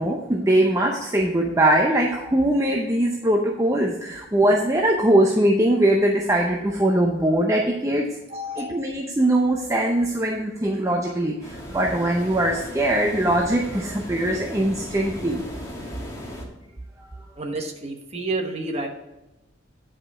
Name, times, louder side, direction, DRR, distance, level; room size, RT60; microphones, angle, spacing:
voice 1, 0.0-8.1 8.6-15.4, right 1 dB, 15° right, 0 dB, 0.6 m, -21 dB
voice 2, 8.3-8.8 17.4-18.9, right 2 dB, 30° right, 3 dB, 1.1 m, -30 dB
sound 1, 11.4-16.5, left 1 dB, 15° left, 1.4 m, -37 dB
9.8 x 5.1 x 4.8 m, 1.0 s
head